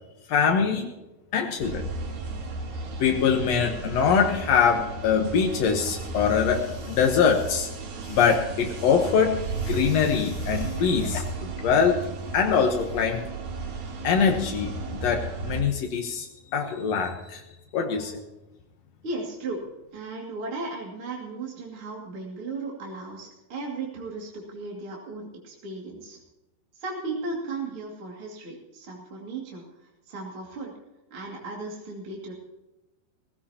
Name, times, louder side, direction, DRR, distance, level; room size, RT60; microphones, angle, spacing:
voice 1, 0.3-0.9 1.3-1.9 3.0-7.7 8.1-12.0 12.3-13.2 14.0-14.7 15.0-16.3 16.5-17.4 17.7-18.2, left 6 dB, 70° left, 3 dB, 1.6 m, -23 dB
sound 1, 1.6-15.6, right 3 dB, 65° right, 4.5 m, -34 dB
voice 2, 19.0-19.6 19.9-26.2 26.8-29.6 30.1-30.7 31.1-32.3, right 3 dB, 40° right, -2 dB, 2.8 m, -36 dB
19.0 x 16.5 x 2.9 m, 1.0 s
omnidirectional pair, 4.7 m